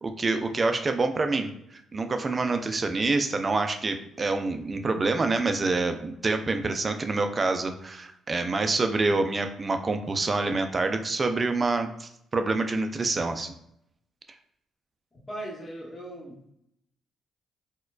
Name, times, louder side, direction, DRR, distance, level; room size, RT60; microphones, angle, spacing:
voice 1, 0.0-13.5, right 3 dB, 30° right, 7 dB, 0.4 m, -27 dB
voice 2, 15.1-16.5, right 1 dB, 30° left, -2 dB, 1.0 m, -39 dB
4.3 x 2.2 x 2.4 m, 0.77 s
cardioid pair, 90°, 0 cm